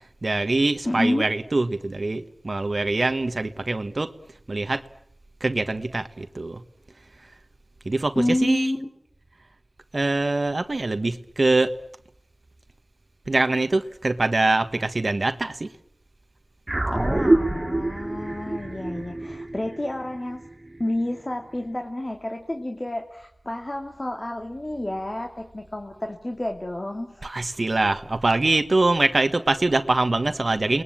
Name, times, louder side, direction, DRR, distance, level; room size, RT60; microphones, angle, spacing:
voice 1, 0.2-4.1 4.5-4.8 5.4-6.6 7.8-8.7 9.9-11.7 13.3-15.7 27.2-30.8, right 2 dB, 60° right, 9 dB, 1.5 m, -23 dB
voice 2, 0.9-1.3 8.1-8.9 16.9-20.5 20.8-27.3, left 1 dB, 35° left, 3 dB, 2.9 m, -29 dB
sound 1, 16.7-21.3, right 2 dB, 40° right, 2.7 m, -26 dB
29.5 x 21.0 x 9.0 m, 0.71 s
wide cardioid pair, 60°, 0 cm